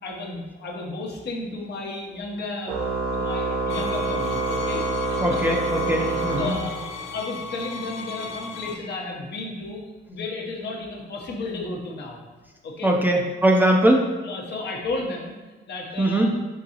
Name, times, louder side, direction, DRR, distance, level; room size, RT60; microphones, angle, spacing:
voice 1, 0.0-5.4 5.9-12.2 12.6-12.9 14.2-15.3 15.7-16.3, left 3 dB, 60° left, 0 dB, 0.8 m, -33 dB
Organ, 2.7-7.2, right 3 dB, 90° right, 0.6 m, -27 dB
sound 1, 3.7-8.7, left 4 dB, 85° left, 0.5 m, -36 dB
voice 2, 5.2-6.5 12.8-14.1 16.0-16.3, right 1 dB, 10° right, 0 dB, 0.5 m, -20 dB
3.9 x 3.6 x 2.8 m, 1.3 s
cardioid pair, 90°, 20 cm